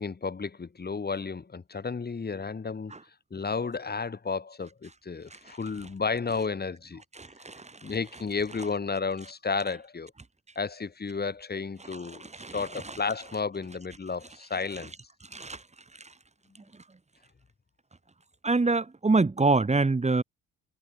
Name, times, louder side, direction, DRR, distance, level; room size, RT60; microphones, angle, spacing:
voice 1, 0.0-2.9 3.3-7.0 7.8-10.1 10.6-14.9, left 4 dB, 30° left, 6.1 m, -32 dB
voice 2, 18.4-20.2, right 3 dB, 20° right, 4.3 m, -24 dB
cardioid pair, 90°, 30 cm